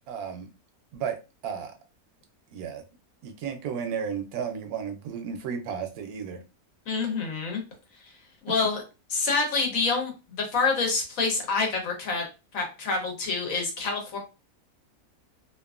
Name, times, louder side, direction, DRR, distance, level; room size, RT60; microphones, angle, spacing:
voice 1, 0.1-0.5 0.9-1.2 1.4-1.7 2.5-2.8 3.2-6.4, right 7 dB, 80° right, 6 dB, 1.1 m, -33 dB
voice 2, 6.9-7.6 8.4-8.8 9.1-12.3 12.5-14.2, left 4 dB, 65° left, 1 dB, 1.2 m, -27 dB
2.8 x 2.4 x 2.3 m, 0.29 s
omnidirectional pair, 1.6 m